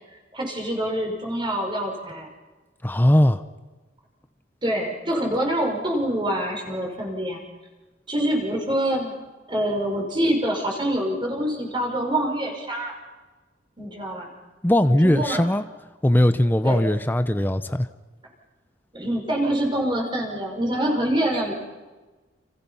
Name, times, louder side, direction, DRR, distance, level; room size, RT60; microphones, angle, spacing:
voice 1, 0.3-2.3 4.6-7.4 8.1-9.1 9.5-12.9 13.8-14.3 14.8-15.4 16.6-16.9 18.9-21.5, right 1 dB, 25° right, 1 dB, 5.5 m, -25 dB
voice 2, 2.8-3.4 14.6-15.6 16.0-17.9, left 1 dB, 10° left, 10 dB, 0.7 m, -19 dB
30.0 x 28.0 x 5.6 m, 1.2 s
head